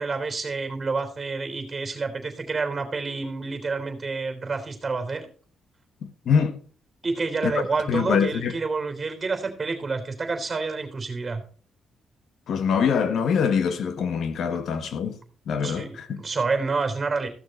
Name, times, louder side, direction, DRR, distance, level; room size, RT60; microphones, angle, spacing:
voice 1, 0.0-5.3 7.0-11.4 15.6-17.3, right 4 dB, 30° right, 3.3 m, -28 dB
voice 2, 6.0-6.6 7.4-7.5 7.9-8.5 12.5-15.2 15.5-16.2, left 6 dB, 70° left, 1.3 m, -24 dB
15.0 x 6.6 x 4.2 m
cardioid pair, 95°, 0 cm